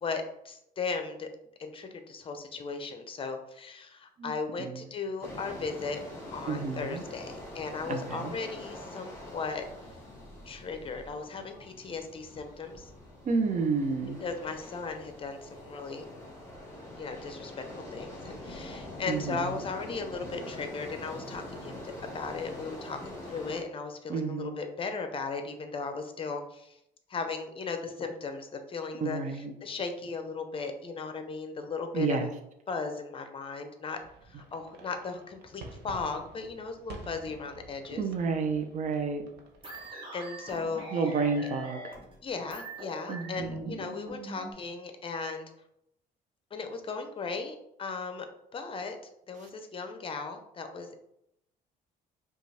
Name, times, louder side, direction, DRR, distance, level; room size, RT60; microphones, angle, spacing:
voice 1, 0.0-1.3 1.6-6.0 6.3-9.6 10.5-12.9 14.2-16.0 17.0-17.7 17.9-26.8 27.1-32.3 32.7-38.0 40.1-40.8 42.2-45.5 46.5-48.3 48.5-49.0 49.3-51.0, left 4 dB, 30° left, 6 dB, 0.6 m, -37 dB
sound 1, 5.2-23.6, left 1 dB, 15° left, 1.5 m, -44 dB
voice 2, 6.5-7.0 7.9-8.3 13.2-14.2 19.1-19.5 24.1-24.5 29.0-29.5 31.9-32.3 38.0-39.2 40.9-41.8 43.1-43.8, right 4 dB, 45° right, 5 dB, 0.6 m, -30 dB
sound 2, 34.0-39.9, right 3 dB, 80° right, 0.8 m, -50 dB
sound 3, 39.6-44.5, right 1 dB, 30° right, 1.3 m, -43 dB
5.0 x 2.4 x 3.3 m, 0.80 s
cardioid pair, 110°, 17 cm